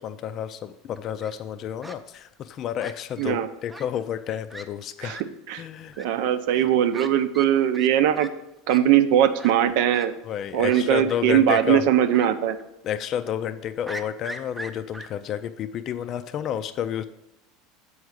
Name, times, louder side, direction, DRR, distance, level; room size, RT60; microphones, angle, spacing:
voice 1, 0.0-5.2 5.5-6.0 6.5-6.7 10.2-11.9 12.8-17.0, left 9 dB, 45° left, 9 dB, 0.4 m, -30 dB
Fowl, 0.9-1.3 1.8-2.0 2.8-3.3 3.7-3.9 4.2-4.3 4.5-4.6 5.1-5.2 5.9-6.0 6.9-7.1 7.3-7.5 7.7-7.9 8.2-8.3 8.7-8.8 9.4-9.5 9.9-10.1 10.7-11.2 11.5-11.6 12.1-12.3 12.6-12.7 13.9-15.1, right 1 dB, 5° right, 0.7 m, -38 dB
voice 2, 6.0-8.3 8.7-10.1 10.5-12.6, right 10 dB, 70° right, 10 dB, 0.6 m, -20 dB
7.1 x 4.7 x 6.5 m, 0.88 s
supercardioid pair, 120°, 0 cm